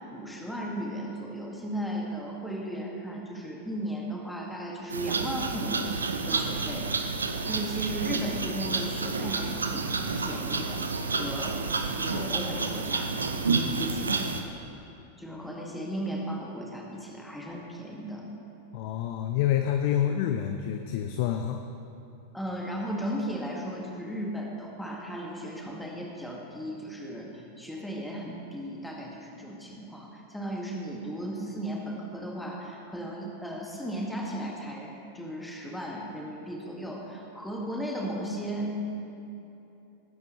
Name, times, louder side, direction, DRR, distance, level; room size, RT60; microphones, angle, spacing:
voice 1, 0.1-6.0 6.3-6.9 7.5-9.9 10.2-11.6 11.9-13.2 13.8-14.3 15.2-18.2 22.3-38.8, equal, 5° left, -2 dB, 2.0 m, -36 dB
sound 1, 4.9-14.4, right 4 dB, 75° right, 0.8 m, -30 dB
voice 2, 18.7-21.7, left 10 dB, 50° left, 6 dB, 0.6 m, -27 dB
19.5 x 10.5 x 3.1 m, 2.9 s
figure-of-eight pair, 90°, 0 cm